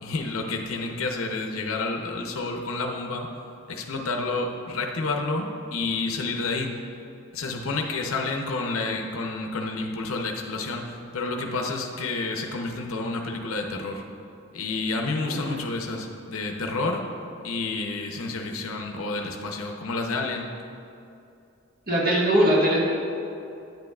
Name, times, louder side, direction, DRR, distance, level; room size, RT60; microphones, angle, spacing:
voice 1, 0.0-3.3 3.7-6.8 7.3-14.0 14.5-17.1 17.4-20.5, left 3 dB, 85° left, 2 dB, 0.7 m, -29 dB
voice 2, 21.9-22.8, equal, 45° right, -4 dB, 1.4 m, -20 dB
9.0 x 7.7 x 2.3 m, 2.7 s
head